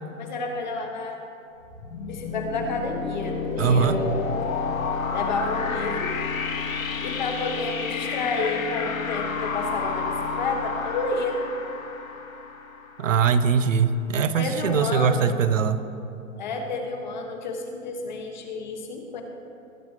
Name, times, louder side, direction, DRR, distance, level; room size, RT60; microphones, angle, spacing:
voice 1, 0.2-1.2 2.1-4.1 5.1-6.2 7.0-11.5 14.3-15.3 16.4-19.2, left 3 dB, 35° left, 3 dB, 1.4 m, -30 dB
sound 1, 1.6-13.3, left 5 dB, 80° left, 2.0 m, -30 dB
voice 2, 3.6-4.0 13.0-15.8, right 6 dB, 70° right, 12 dB, 0.9 m, -21 dB
19.5 x 9.4 x 3.2 m, 2.6 s
hypercardioid pair, 170°, 40 cm